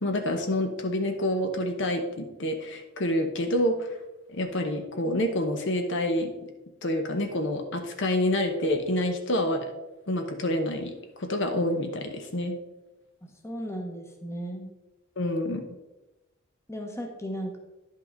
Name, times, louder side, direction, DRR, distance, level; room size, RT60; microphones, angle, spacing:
voice 1, 0.0-4.0 4.3-6.3 6.8-9.7 10.1-12.6 15.2-15.6, left 1 dB, 60° left, 5 dB, 0.9 m, -27 dB
voice 2, 13.2-14.7 16.7-17.6, equal, 15° left, 3 dB, 1.0 m, -36 dB
10.5 x 5.5 x 3.9 m, 1.0 s
head